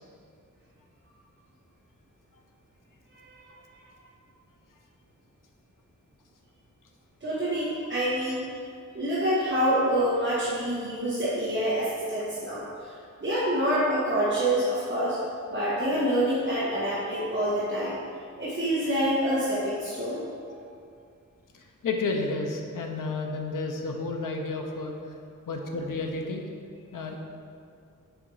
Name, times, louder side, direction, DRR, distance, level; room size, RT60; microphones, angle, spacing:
voice 1, 7.2-8.4 8.9-12.9 13.2-15.2 15.5-18.0 18.4-20.2, equal, 35° right, -11 dB, 1.5 m, -26 dB
voice 2, 21.5-24.9 25.5-26.5 26.9-27.2, left 3 dB, 80° left, 2 dB, 0.8 m, -31 dB
6.3 x 4.9 x 4.8 m, 2.3 s
wide cardioid pair, 150°, 32 cm